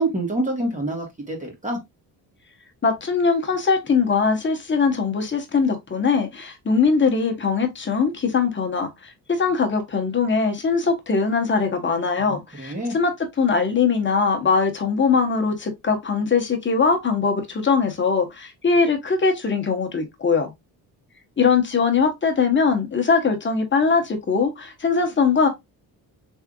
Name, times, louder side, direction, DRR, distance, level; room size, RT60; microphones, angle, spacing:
voice 1, 0.0-1.8 12.2-12.9, right 2 dB, 20° right, 1.4 m, -27 dB
voice 2, 2.8-20.5 21.4-25.5, left 5 dB, 30° left, 1.1 m, -21 dB
3.5 x 3.3 x 2.4 m
cardioid pair, 105°, 39 cm